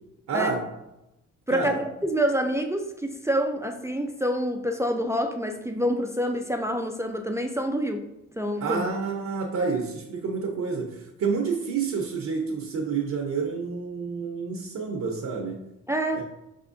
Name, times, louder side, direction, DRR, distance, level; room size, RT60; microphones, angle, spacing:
voice 1, 0.3-0.6 1.5-1.8 8.6-15.6 16.1-16.2, right 5 dB, 55° right, 1 dB, 0.7 m, -29 dB
voice 2, 1.5-8.1 8.4-8.8 15.9-16.2, equal, 10° right, 4 dB, 0.3 m, -27 dB
4.9 x 3.5 x 2.5 m, 0.90 s
cardioid pair, 85°, 32 cm